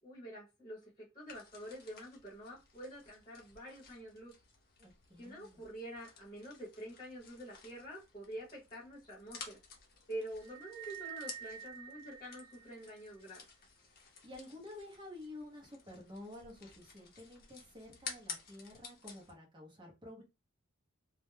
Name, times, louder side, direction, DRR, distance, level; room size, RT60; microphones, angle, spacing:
voice 1, 0.0-4.4 5.2-9.6 10.1-13.5, right 1 dB, 20° left, -4 dB, 1.0 m, -47 dB
sound 1, 1.3-19.3, left 5 dB, 45° left, 0.7 m, -53 dB
voice 2, 4.8-5.6 13.9-20.2, left 1 dB, 20° right, -1 dB, 0.8 m, -51 dB
sound 2, 10.4-13.1, right 11 dB, 60° right, 0.5 m, -49 dB
2.4 x 2.1 x 3.1 m, 0.26 s
head